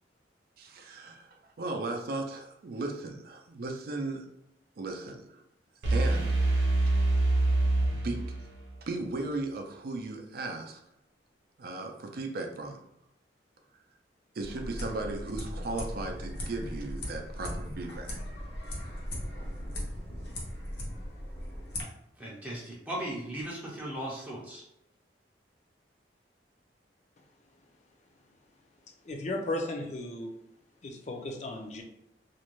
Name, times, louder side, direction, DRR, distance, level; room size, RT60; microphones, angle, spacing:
voice 1, 0.6-1.3 1.6-4.2 4.8-5.4 5.9-6.7 7.8-8.2 8.8-10.8 11.6-12.8 14.3-18.2, right 2 dB, 55° right, 3 dB, 0.4 m, -36 dB
sound 1, 5.8-8.7, right 2 dB, 90° right, 0.7 m, -25 dB
sound 2, 14.4-21.8, equal, 70° left, 0.8 m, -38 dB
voice 2, 22.2-24.6, right 1 dB, 10° right, -5 dB, 0.5 m, -37 dB
voice 3, 29.0-30.3 30.8-31.8, left 1 dB, 40° left, 3 dB, 0.4 m, -35 dB
2.5 x 2.1 x 3.0 m, 0.84 s
head